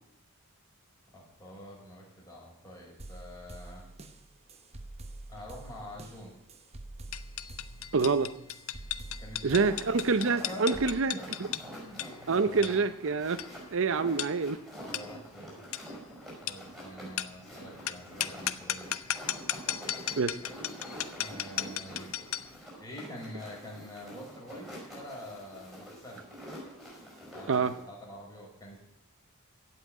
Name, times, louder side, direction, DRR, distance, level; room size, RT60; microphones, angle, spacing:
voice 1, 1.1-3.8 5.3-6.3 9.2-9.6 10.2-10.7 11.1-11.3 11.7-12.0 12.4-12.8 14.8-15.6 16.4-19.0 21.2-22.1 22.8-26.2 27.2-28.8, equal, 15° left, -4 dB, 5.8 m, -46 dB
sound 1, 3.0-11.0, right 2 dB, 30° right, 1.0 m, -47 dB
sound 2, 7.1-22.6, left 11 dB, 65° left, 0.6 m, -37 dB
voice 2, 7.9-8.3 9.4-11.1 12.3-13.4 13.7-14.6 20.2-20.4 27.5-27.7, right 4 dB, 60° right, 11 dB, 0.6 m, -26 dB
sound 3, 9.5-27.8, equal, ahead, 5.1 m, -46 dB
15.5 x 5.8 x 9.2 m, 0.79 s
head